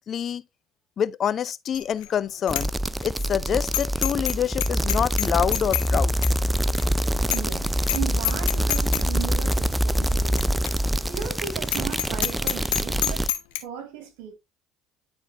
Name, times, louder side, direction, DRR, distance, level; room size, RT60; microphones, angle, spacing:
voice 1, 0.1-0.4 1.0-2.7 3.0-6.2, left 9 dB, 50° left, 0.5 m, -26 dB
Bicycle bell, 1.7-2.1 2.5-2.7 3.0-3.1 3.7-4.4 4.6-5.9 6.2-6.3 6.8-6.9 7.3-7.6 7.8-8.0 8.2-9.0 9.5-9.6 10.4-10.5 10.7-10.8 11.2-11.3 11.7-13.6, left 14 dB, 85° left, 1.0 m, -27 dB
sound 1, 2.5-13.3, equal, 10° right, 0.4 m, -25 dB
voice 2, 7.3-10.6 11.1-13.3 13.6-14.3, right 8 dB, 80° right, 2.4 m, -36 dB
10.5 x 4.4 x 2.5 m
supercardioid pair, 80°, 0 cm